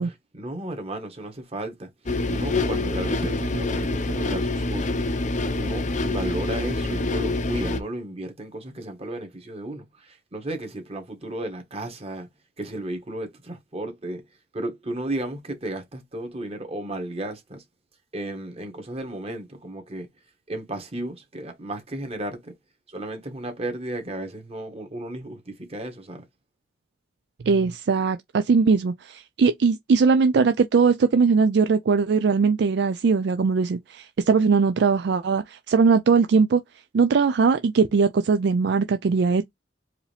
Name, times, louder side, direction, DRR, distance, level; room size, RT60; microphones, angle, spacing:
voice 1, 0.0-1.9 2.3-12.3 12.6-14.2 14.5-17.6 18.1-20.1 20.5-22.5 22.9-26.2, right 1 dB, 35° right, 1.4 m, -34 dB
sound 1, 2.1-7.8, left 2 dB, 45° left, 0.6 m, -26 dB
voice 2, 27.5-36.6 36.9-39.4, right 5 dB, 65° right, 0.4 m, -20 dB
4.8 x 2.7 x 3.4 m
head